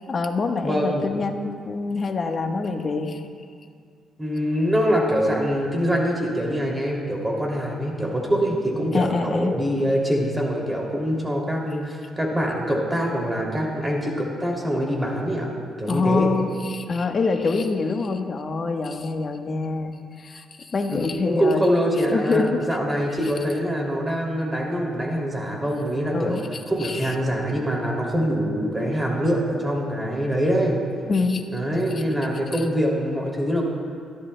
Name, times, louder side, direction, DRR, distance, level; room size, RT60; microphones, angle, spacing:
voice 1, 0.1-3.2 8.9-9.5 15.9-21.6 22.1-22.6 25.5-25.6 26.1-27.1 31.1-31.4, left 4 dB, 40° left, 4 dB, 1.2 m, -25 dB
voice 2, 0.6-1.2 4.2-15.5 15.8-16.3 20.9-26.4 26.7-30.8 31.5-33.6, equal, 15° right, -1 dB, 2.7 m, -24 dB
23.5 x 13.0 x 2.2 m, 2.2 s
cardioid pair, 90°, 0 cm